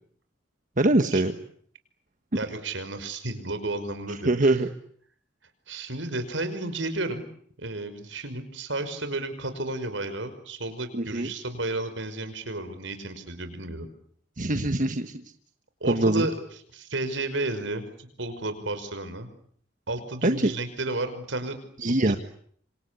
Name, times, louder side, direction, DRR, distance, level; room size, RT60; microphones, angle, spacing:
voice 1, 0.8-1.3 4.2-4.7 10.9-11.3 14.4-15.2 15.9-16.3 20.2-20.5 21.8-22.2, right 2 dB, 45° right, 7 dB, 1.4 m, -23 dB
voice 2, 2.3-4.6 5.7-7.2 7.6-13.9 15.8-16.3 16.7-19.3 19.9-22.2, right 2 dB, 80° right, 10 dB, 5.4 m, -32 dB
27.0 x 26.5 x 8.4 m, 0.62 s
head